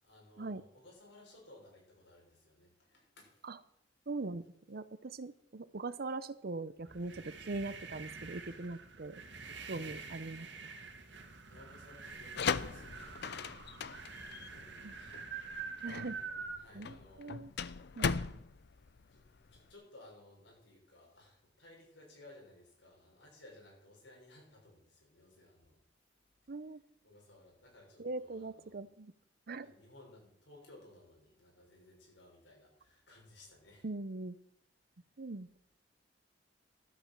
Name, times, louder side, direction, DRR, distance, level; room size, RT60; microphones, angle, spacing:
voice 1, 0.0-3.4 9.6-10.0 11.5-13.6 14.3-15.2 15.9-17.9 19.0-25.8 27.0-28.8 29.6-33.9, left 1 dB, 85° left, -1 dB, 6.3 m, -59 dB
voice 2, 4.1-9.2 9.7-10.7 14.8-14.9 15.8-16.2 16.7-17.5 17.9-18.1 26.5-26.8 28.0-29.1 29.5-29.7 33.8-34.3 35.2-35.5, right 3 dB, 55° right, 15 dB, 0.7 m, -41 dB
sound 1, 6.8-16.6, right 5 dB, 75° right, 1.7 m, -47 dB
sound 2, 12.1-19.7, left 5 dB, 65° left, 0.6 m, -38 dB
12.5 x 8.6 x 7.4 m, 0.71 s
head